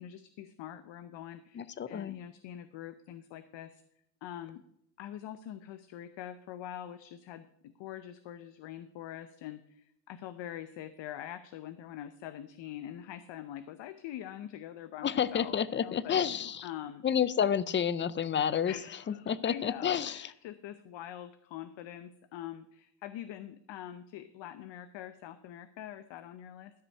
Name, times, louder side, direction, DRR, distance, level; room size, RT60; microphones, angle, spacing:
voice 1, 0.0-3.8 4.2-4.6 5.0-16.2 16.6-17.0 18.6-26.7, left 11 dB, 70° left, 11 dB, 0.8 m, -44 dB
voice 2, 1.5-2.2 15.0-16.7 17.0-18.8 19.1-20.3, left 8 dB, 25° left, 17 dB, 0.5 m, -30 dB
13.5 x 5.3 x 6.5 m, 0.73 s
cardioid pair, 125°, 45 cm